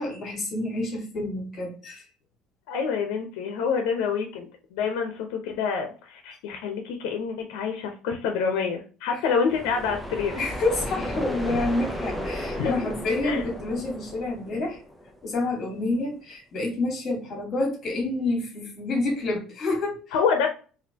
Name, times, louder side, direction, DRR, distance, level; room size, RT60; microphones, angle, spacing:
voice 1, 0.0-2.0 9.1-9.2 10.4-14.8 15.2-20.1, left 2 dB, 30° left, 1 dB, 1.6 m, -28 dB
voice 2, 2.7-10.4 11.5-11.6 12.6-12.8 13.2-13.4 20.1-20.5, left 6 dB, 85° left, 4 dB, 0.8 m, -27 dB
sound 1, 9.5-15.2, equal, ahead, 0.5 m, -34 dB
4.2 x 2.7 x 2.8 m, 0.37 s
cardioid pair, 160°, 0 cm